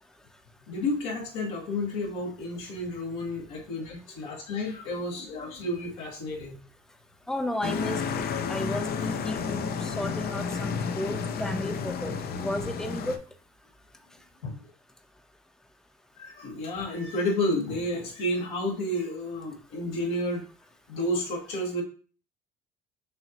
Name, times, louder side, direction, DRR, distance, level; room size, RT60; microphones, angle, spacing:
voice 1, 0.7-6.6 14.4-14.5 16.2-20.4 20.9-21.8, left 1 dB, 80° left, -3 dB, 1.8 m, -31 dB
voice 2, 7.3-9.7 10.0-13.2, left 1 dB, 5° left, 6 dB, 0.7 m, -33 dB
sound 1, 7.6-13.2, left 6 dB, 50° left, 0.6 m, -31 dB
6.1 x 2.8 x 2.9 m, 0.39 s
hypercardioid pair, 70°, 20 cm